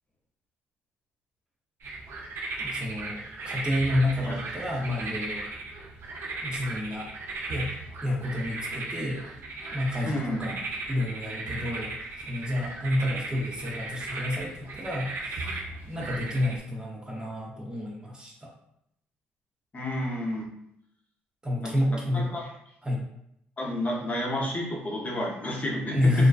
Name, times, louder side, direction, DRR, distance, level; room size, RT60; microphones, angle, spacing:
sound 1, 1.8-16.6, right 3 dB, 60° right, 0.5 m, -36 dB
voice 1, 2.6-3.2 3.4-5.5 6.4-7.1 7.5-7.7 8.0-9.2 9.7-10.6 10.9-15.6 15.9-18.5 21.4-22.4 22.8-23.0 25.9-26.3, left 1 dB, 20° right, -2 dB, 0.7 m, -29 dB
voice 2, 10.0-10.6 19.7-20.5 21.6-21.7 22.1-22.5 23.6-26.3, left 1 dB, 35° left, -3 dB, 0.7 m, -31 dB
2.5 x 2.1 x 2.3 m, 0.75 s
supercardioid pair, 65°, 4 cm